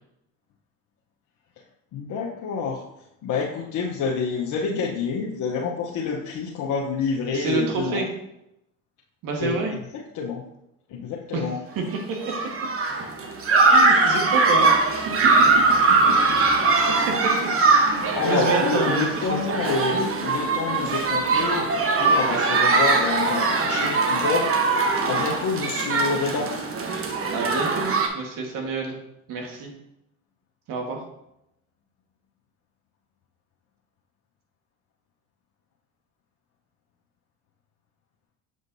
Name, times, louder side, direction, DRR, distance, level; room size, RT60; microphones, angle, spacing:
voice 1, 1.9-2.8 3.2-8.1 9.4-9.6 10.1-10.4 10.9-11.6 15.9-16.4 18.1-26.5, left 5 dB, 55° left, -3 dB, 1.0 m, -28 dB
voice 2, 7.3-8.1 9.2-9.8 11.3-11.8 12.1-12.3 13.7-14.8 15.0-15.1 16.3-17.5 17.8-19.1 27.3-29.0 29.3-29.7 30.7-31.0, right 4 dB, 65° right, 2 dB, 1.6 m, -29 dB
sound 1, 11.9-28.1, right 3 dB, 40° right, 1.1 m, -21 dB
7.3 x 4.9 x 2.7 m, 0.82 s
hypercardioid pair, 75°, 36 cm